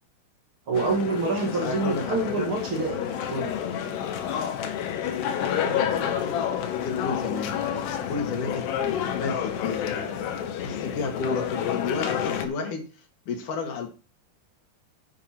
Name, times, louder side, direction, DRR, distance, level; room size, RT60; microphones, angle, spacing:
sound 1, 0.7-12.5, left 9 dB, 80° left, 3.4 m, -29 dB
voice 1, 0.7-3.0 3.3-3.5, right 3 dB, 45° right, 3 dB, 1.9 m, -26 dB
voice 2, 1.4-2.5 5.4-7.6 8.1-10.2 10.6-12.9 13.3-13.9, left 4 dB, 55° left, 3 dB, 3.4 m, -32 dB
10.5 x 8.8 x 3.1 m, 0.33 s
omnidirectional pair, 4.8 m